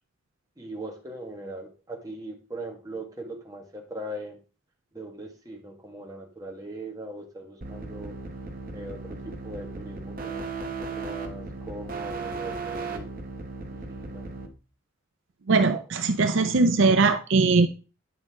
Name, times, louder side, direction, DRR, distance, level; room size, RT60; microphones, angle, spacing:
voice 1, 0.6-4.4 4.9-8.2 8.7-13.1 13.7-14.3, right 1 dB, 15° right, 1 dB, 1.5 m, -40 dB
sound 1, 7.6-14.5, right 3 dB, 45° right, 1.1 m, -36 dB
voice 2, 15.5-17.7, right 3 dB, 65° right, 9 dB, 0.5 m, -20 dB
9.5 x 5.2 x 3.6 m, 0.33 s
head